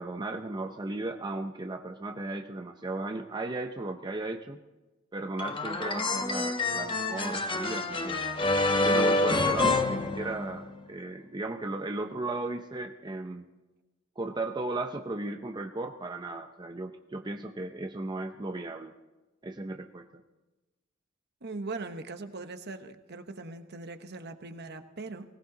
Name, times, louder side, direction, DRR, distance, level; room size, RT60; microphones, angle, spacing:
voice 1, 0.0-4.6 5.1-8.2 8.8-13.4 14.2-18.9 19.4-20.1, right 2 dB, 20° right, 5 dB, 0.7 m, -36 dB
sound 1, 5.4-10.8, left 2 dB, 25° left, 1.1 m, -27 dB
voice 2, 21.4-25.2, right 3 dB, 55° right, 7 dB, 1.1 m, -40 dB
20.0 x 17.5 x 3.9 m, 1.1 s
head